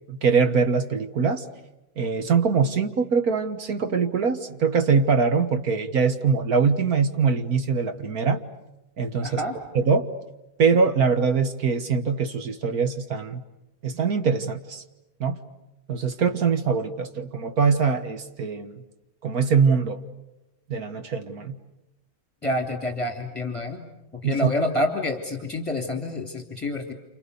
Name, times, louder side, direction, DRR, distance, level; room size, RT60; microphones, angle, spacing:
voice 1, 0.1-1.4 2.0-8.4 9.0-9.4 9.7-10.1 10.6-13.4 13.8-14.8 15.2-15.4 15.9-18.8 19.2-20.0 20.7-21.6 24.2-24.5, right 5 dB, 50° right, 8 dB, 1.7 m, -23 dB
voice 2, 9.2-9.6 22.4-23.8 24.1-26.9, left 1 dB, 5° left, 2 dB, 3.0 m, -28 dB
29.5 x 28.5 x 6.9 m, 0.98 s
omnidirectional pair, 2.2 m